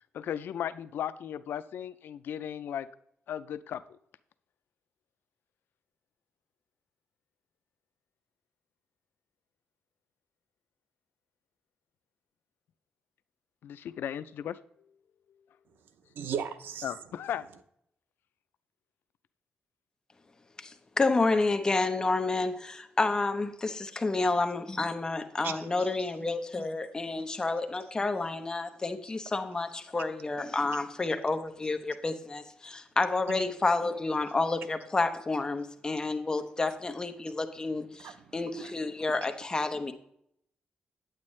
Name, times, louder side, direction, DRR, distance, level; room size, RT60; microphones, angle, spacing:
voice 1, 0.1-2.9 3.3-4.0 13.6-14.9 16.8-17.5, left 9 dB, 85° left, 14 dB, 0.4 m, -36 dB
voice 2, 16.2-16.9 25.4-25.9 33.3-33.4 38.0-38.2, right 7 dB, 90° right, 11 dB, 0.6 m, -36 dB
voice 3, 20.6-39.9, left 3 dB, 20° left, 7 dB, 0.8 m, -30 dB
8.9 x 8.8 x 3.2 m, 0.72 s
wide cardioid pair, 135°, 3 cm